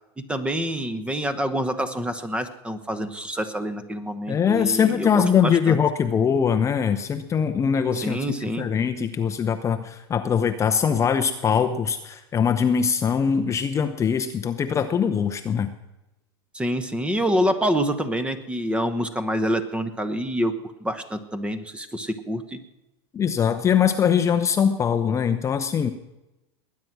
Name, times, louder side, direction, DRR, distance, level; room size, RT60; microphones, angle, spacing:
voice 1, 0.2-5.8 8.0-8.7 16.5-20.5 20.8-22.6, equal, 10° right, 11 dB, 1.1 m, -27 dB
voice 2, 4.3-8.2 8.5-15.7 23.1-25.9, left 7 dB, 20° left, 8 dB, 0.7 m, -22 dB
20.5 x 9.5 x 6.1 m, 0.97 s
supercardioid pair, 130°, 14 cm